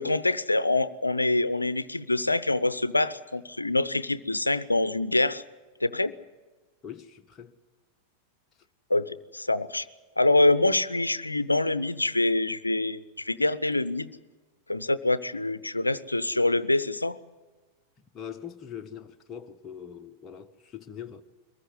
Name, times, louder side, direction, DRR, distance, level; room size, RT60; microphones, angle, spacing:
voice 1, 0.0-5.4 5.8-6.1 8.9-9.9 10.2-14.1 14.7-17.2, left 2 dB, 85° left, 0.7 m, -25 dB
voice 2, 6.8-7.5 18.1-21.2, left 8 dB, 25° left, 1.0 m, -42 dB
23.0 x 15.0 x 9.6 m
figure-of-eight pair, 90°, 0 cm